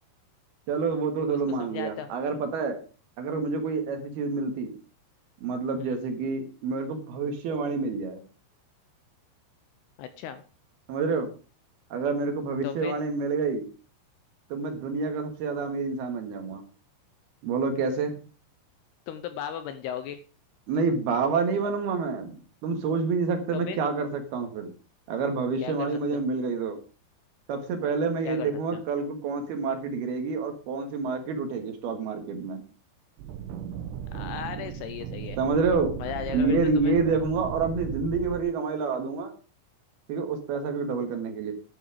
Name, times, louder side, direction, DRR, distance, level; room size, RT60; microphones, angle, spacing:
voice 1, 0.7-2.8 3.2-4.7 5.4-8.2 10.9-11.3 11.9-13.7 14.5-16.6 17.4-18.1 20.7-24.7 25.1-26.8 27.5-32.6 35.4-35.9 36.3-39.3 40.1-41.5, right 4 dB, 65° right, 6 dB, 3.3 m, -28 dB
voice 2, 1.3-2.1 5.8-6.0 10.0-10.4 12.6-13.0 19.1-20.2 23.5-23.8 25.6-26.2 28.3-28.8 34.1-35.4 36.0-36.9, left 9 dB, 80° left, 11 dB, 2.5 m, -36 dB
sound 1, 33.2-38.4, right 8 dB, 90° right, 3.6 m, -36 dB
12.0 x 9.2 x 4.9 m, 0.35 s
omnidirectional pair, 5.3 m